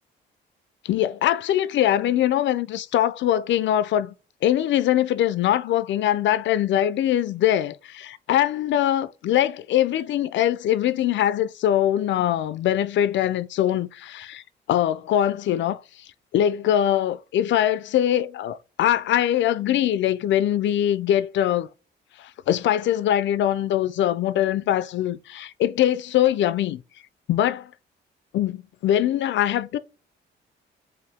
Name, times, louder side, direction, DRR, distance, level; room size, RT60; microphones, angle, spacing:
voice 1, 0.8-4.1 4.4-14.4 14.7-16.1 16.3-21.7 22.2-26.8 27.3-27.7 28.3-29.8, left 11 dB, 70° left, 0.4 m, -22 dB
4.9 x 2.6 x 3.3 m
cardioid pair, 90°, 20 cm